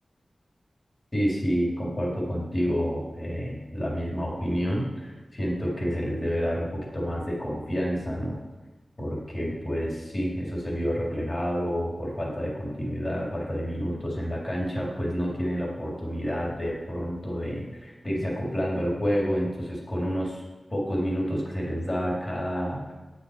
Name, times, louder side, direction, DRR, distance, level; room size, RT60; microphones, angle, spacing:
voice 1, 1.1-8.4 9.0-20.4 20.7-22.9, equal, 40° left, -4 dB, 3.3 m, -29 dB
8.9 x 6.7 x 5.1 m, 1.2 s
cardioid pair, 45°, 0 cm